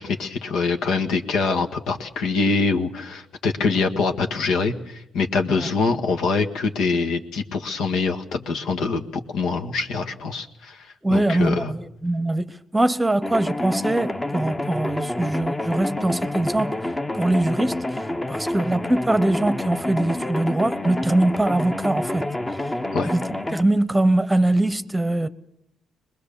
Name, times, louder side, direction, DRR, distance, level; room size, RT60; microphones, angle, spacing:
voice 1, 0.0-9.0 9.3-11.7 22.9-23.1, left 4 dB, 80° left, 1.7 m, -24 dB
voice 2, 11.0-16.8 17.1-17.9 18.3-22.3 23.0-25.3, right 1 dB, 10° right, 1.0 m, -22 dB
sound 1, 13.2-23.6, left 1 dB, 15° left, 0.9 m, -28 dB
23.5 x 21.0 x 7.0 m
cardioid pair, 90°, 0 cm